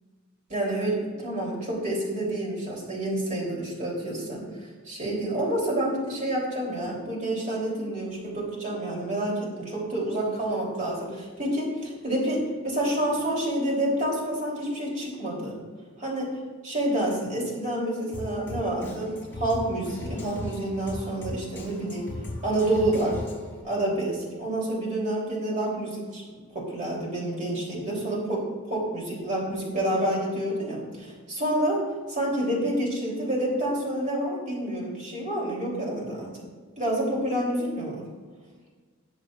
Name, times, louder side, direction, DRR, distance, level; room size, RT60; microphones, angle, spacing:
voice 1, 0.5-4.5 4.9-15.6 16.0-16.3 16.6-22.1 22.4-23.2 23.6-26.2 26.5-31.8 32.1-36.3 36.8-37.9, right 1 dB, 40° right, -4 dB, 3.3 m, -28 dB
Drum kit, 18.1-23.6, left 1 dB, 10° left, 2.4 m, -37 dB
19.0 x 7.3 x 2.5 m, 1.5 s
head